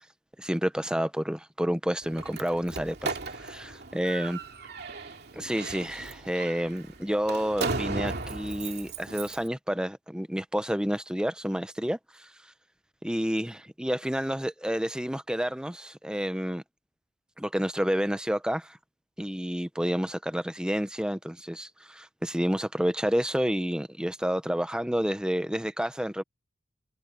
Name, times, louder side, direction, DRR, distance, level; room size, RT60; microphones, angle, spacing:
voice 1, 0.4-4.4 5.3-12.3 13.0-16.6 17.4-18.8 19.2-26.2, equal, 5° right, 0.7 m, -29 dB
Slam, 2.0-9.5, right 3 dB, 55° right, 2.4 m, -36 dB
head